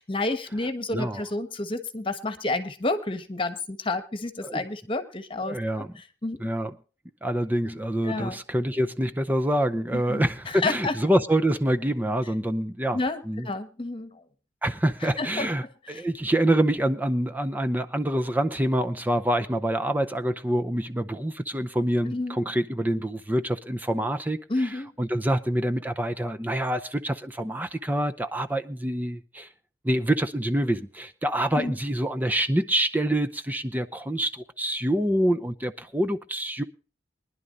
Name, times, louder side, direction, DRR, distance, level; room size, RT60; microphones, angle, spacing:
voice 1, 0.0-5.6 6.2-6.4 8.0-8.4 9.9-10.9 12.9-13.2 13.4-14.2 15.2-15.5 15.9-16.0 22.1-22.4 24.5-24.9 31.6-31.8, left 2 dB, 30° left, 1.3 m, -30 dB
voice 2, 0.9-1.2 4.4-4.6 5.4-5.9 6.4-6.7 7.2-13.5 14.6-29.5 29.8-36.6, right 1 dB, 10° right, 0.6 m, -26 dB
23.5 x 11.0 x 2.5 m
head